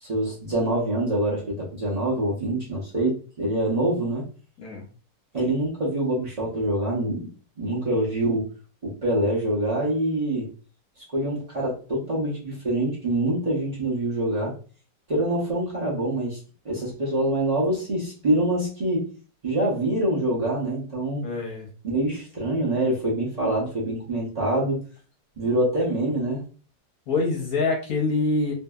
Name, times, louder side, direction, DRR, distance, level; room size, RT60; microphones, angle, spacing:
voice 1, 0.0-4.2 5.3-7.3 7.6-8.5 8.8-10.5 11.1-14.5 15.1-16.4 16.6-19.1 19.4-21.2 21.8-24.8 25.4-26.4, right 1 dB, 55° right, -6 dB, 0.4 m, -25 dB
voice 2, 21.2-21.7 27.1-28.5, left 3 dB, 65° left, 0 dB, 1.0 m, -25 dB
2.7 x 2.5 x 2.2 m, 0.37 s
omnidirectional pair, 1.9 m